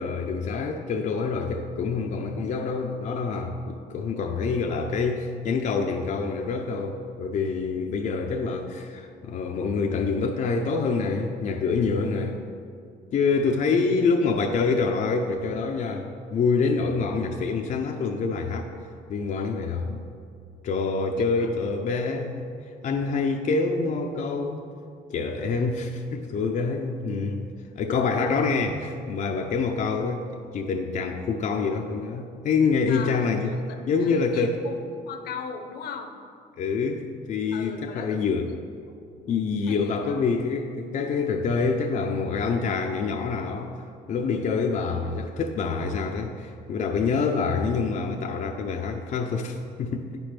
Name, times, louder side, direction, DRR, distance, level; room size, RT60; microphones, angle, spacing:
voice 1, 0.0-12.4 13.1-18.7 19.1-20.0 20.6-22.5 22.8-24.6 25.1-27.5 27.7-33.5 33.9-34.6 36.6-38.5 39.3-43.8 44.1-50.1, left 4 dB, 50° left, 2 dB, 0.6 m, -26 dB
voice 2, 21.2-21.5 32.9-34.7 35.0-36.2 37.5-38.6 39.1-40.2, left 6 dB, 70° left, 6 dB, 0.9 m, -39 dB
9.2 x 5.2 x 5.9 m, 2.3 s
cardioid pair, 110°, 17 cm